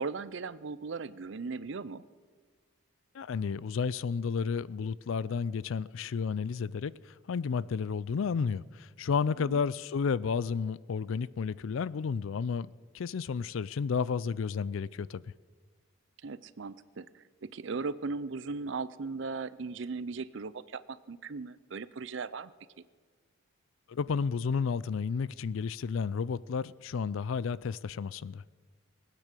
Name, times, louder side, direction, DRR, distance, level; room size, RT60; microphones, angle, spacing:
voice 1, 0.0-2.0 9.4-9.6 16.2-22.5, right 4 dB, 60° right, 0.5 m, -38 dB
voice 2, 3.1-15.2 23.9-28.5, left 5 dB, 70° left, 0.4 m, -32 dB
20.0 x 9.2 x 6.7 m
head